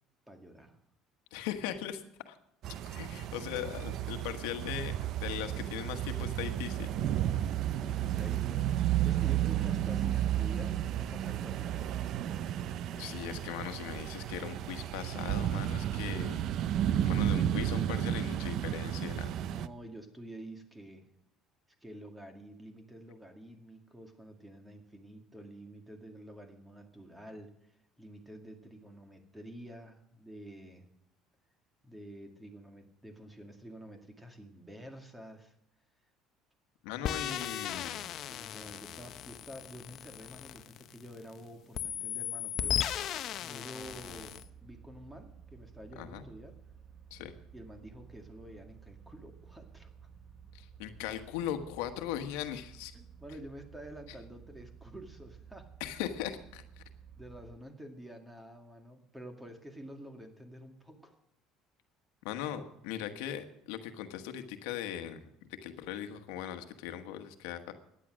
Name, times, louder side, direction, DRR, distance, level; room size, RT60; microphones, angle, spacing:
voice 1, 0.3-0.8 7.8-12.0 19.5-21.1 21.8-30.9 31.8-35.5 37.1-37.5 37.9-42.8 43.4-46.6 47.5-49.9 52.9-55.7 57.2-61.2, equal, 10° right, 5 dB, 2.1 m, -49 dB
voice 2, 1.3-2.4 2.9-4.9 5.2-6.9 13.0-16.4 17.0-19.3 36.8-38.0 46.0-46.2 47.1-47.3 50.5-52.9 55.8-56.8 62.2-67.7, left 10 dB, 90° left, 7 dB, 1.3 m, -39 dB
sound 1, 2.6-19.7, right 11 dB, 60° right, 0.6 m, -32 dB
sound 2, 37.0-41.3 41.7-44.4, left 10 dB, 55° left, 0.7 m, -37 dB
sound 3, 43.8-57.6, right 7 dB, 30° right, 1.3 m, -54 dB
15.0 x 10.0 x 6.3 m, 0.78 s
cardioid pair, 115°, 0 cm